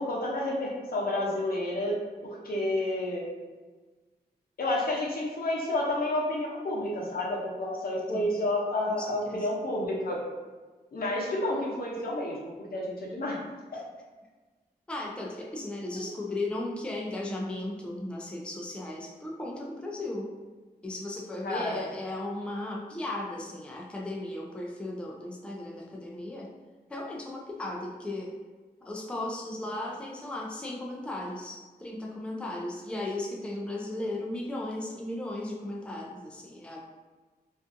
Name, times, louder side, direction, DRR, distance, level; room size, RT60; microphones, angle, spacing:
voice 1, 0.0-2.0 2.2-3.3 4.6-10.2 10.9-13.4 16.0-16.1 21.4-21.9, left 1 dB, 65° left, -3 dB, 0.7 m, -30 dB
voice 2, 8.9-9.5 14.9-20.3 20.8-26.5 26.9-28.3 28.8-36.8, left 1 dB, 5° left, -2 dB, 0.4 m, -36 dB
2.5 x 2.3 x 2.5 m, 1.3 s
cardioid pair, 65°, 16 cm